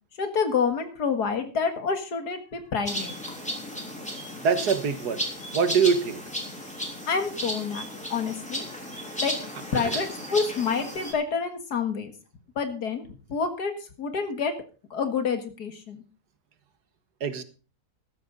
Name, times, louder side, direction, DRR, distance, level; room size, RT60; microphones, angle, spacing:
voice 1, 0.2-3.1 7.1-8.7 9.2-9.4 9.7-12.1 12.6-14.6 14.9-16.0, left 5 dB, 80° left, 2.3 m, -28 dB
sound 1, 2.9-11.1, equal, 5° left, 3.5 m, -34 dB
voice 2, 4.4-5.2 5.5-6.2 9.8-10.0 17.2-17.4, right 6 dB, 90° right, 1.9 m, -24 dB
14.5 x 12.5 x 4.0 m
omnidirectional pair, 1.7 m